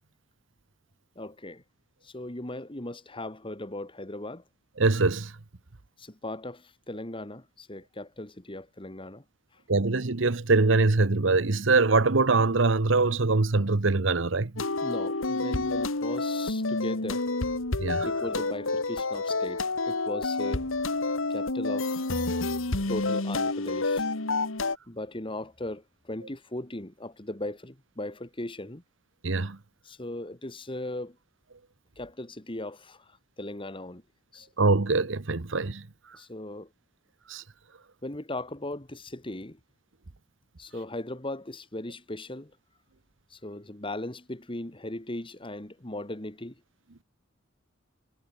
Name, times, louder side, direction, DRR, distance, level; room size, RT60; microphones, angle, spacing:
voice 1, 1.2-1.6 2.0-4.4 6.0-9.2 14.8-17.2 18.0-20.7 21.3-22.3 22.9-24.1 24.9-28.8 29.8-31.2 32.0-34.0 34.3-34.5 36.1-36.7 38.0-39.6 40.6-42.5 43.3-46.6, left 1 dB, 25° left, 1.9 m, -38 dB
voice 2, 4.8-5.3 9.7-14.5 17.8-18.1 29.2-29.6 34.6-35.8 37.3-37.4, right 3 dB, 70° right, 1.1 m, -23 dB
sound 1, 14.6-24.8, left 3 dB, 85° left, 2.0 m, -29 dB
head